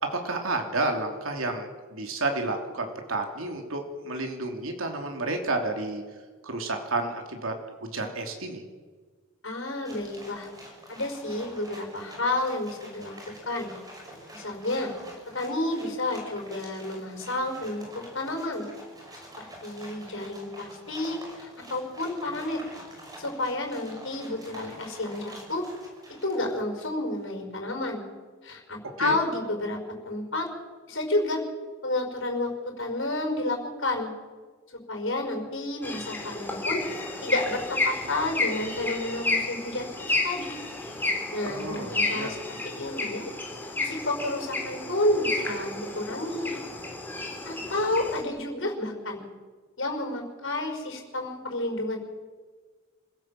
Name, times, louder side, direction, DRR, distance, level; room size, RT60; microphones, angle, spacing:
voice 1, 0.0-6.0 6.4-7.5 7.8-8.6 29.0-29.2 41.4-42.4, right 2 dB, 75° right, 3 dB, 3.1 m, -31 dB
voice 2, 9.4-10.5 10.9-13.2 13.5-13.7 14.3-14.9 15.3-18.7 19.4-22.6 23.2-25.6 26.2-28.0 28.4-29.8 30.1-30.5 30.9-31.4 31.8-34.1 34.9-36.8 37.2-40.5 41.3-43.3 43.8-46.6 47.4-49.2 49.8-52.0, left 2 dB, 65° left, 3 dB, 5.4 m, -30 dB
sound 1, 9.8-27.0, right 1 dB, 20° right, 6.2 m, -47 dB
sound 2, 35.8-48.2, left 2 dB, 10° left, 3.7 m, -31 dB
26.0 x 17.0 x 7.7 m, 1.5 s
head